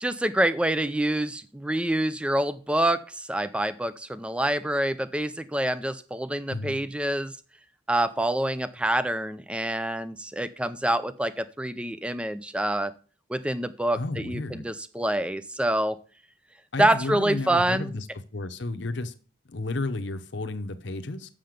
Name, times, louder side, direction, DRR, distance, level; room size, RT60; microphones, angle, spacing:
voice 1, 0.0-7.4 7.9-12.9 13.3-16.0 16.8-18.0, right 1 dB, 5° right, 14 dB, 0.4 m, -26 dB
voice 2, 6.5-6.8 13.9-14.7 16.7-18.1 18.3-19.1 19.5-21.3, left 2 dB, 65° left, 8 dB, 0.9 m, -32 dB
7.6 x 6.7 x 5.1 m, 0.38 s
head